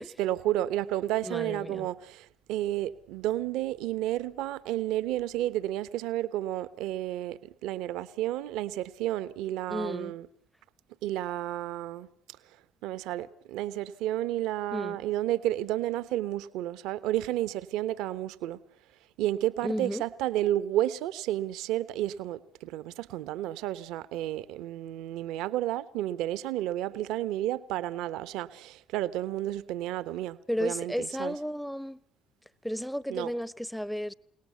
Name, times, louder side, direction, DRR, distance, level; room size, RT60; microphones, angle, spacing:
voice 1, 0.2-10.3 11.0-12.1 12.8-18.6 19.2-31.3 33.1-33.3, right 13 dB, 70° right, 1.0 m, -31 dB
voice 2, 1.2-1.9 9.7-10.1 14.7-15.0 19.6-20.0 30.5-32.0 32.6-34.1, equal, 5° left, 1.0 m, -33 dB
29.0 x 18.5 x 8.2 m
hypercardioid pair, 55°, 0 cm